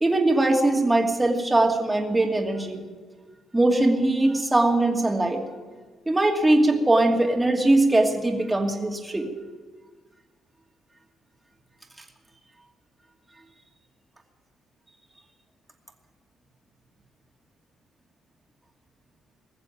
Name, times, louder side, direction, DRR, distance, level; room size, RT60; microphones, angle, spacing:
voice 1, 0.0-2.8 3.5-5.4 6.1-9.3, right 2 dB, 15° right, 2 dB, 2.5 m, -21 dB
21.0 x 7.5 x 9.2 m, 1.4 s
cardioid pair, 90°, 0 cm